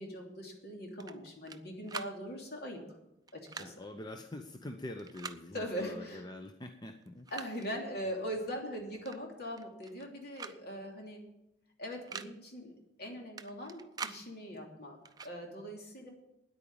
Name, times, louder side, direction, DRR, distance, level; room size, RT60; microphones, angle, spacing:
voice 1, 0.0-2.8 3.3-3.7 5.5-6.2 7.3-11.2 11.8-16.1, equal, 60° left, 0 dB, 3.0 m, -41 dB
sound 1, 1.0-1.6 1.9-2.1 3.3-3.7 5.0-5.4 6.5-6.6 7.0-7.7 9.0-9.2 9.5-10.1 10.4-10.6 10.8-10.9 11.9-12.3 13.4-14.2 15.0-15.3, right 5 dB, 20° right, 0.5 m, -44 dB
voice 2, 3.6-7.3, left 1 dB, 25° left, 5 dB, 0.7 m, -45 dB
9.9 x 8.8 x 8.7 m, 0.88 s
head